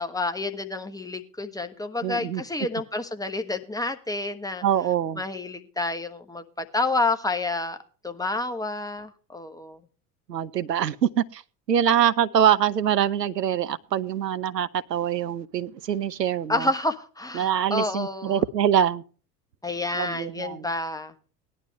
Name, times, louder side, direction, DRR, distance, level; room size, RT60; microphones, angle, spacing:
voice 1, 0.0-4.6 5.2-7.8 8.0-9.8 16.5-18.4 19.6-21.1, left 2 dB, 5° left, 7 dB, 1.3 m, -29 dB
voice 2, 2.0-2.4 4.6-5.2 10.3-11.4 11.7-16.7 17.3-19.0 20.0-20.7, right 9 dB, 80° right, 13 dB, 0.8 m, -24 dB
18.0 x 11.0 x 3.1 m, 0.39 s
figure-of-eight pair, 75°, 48 cm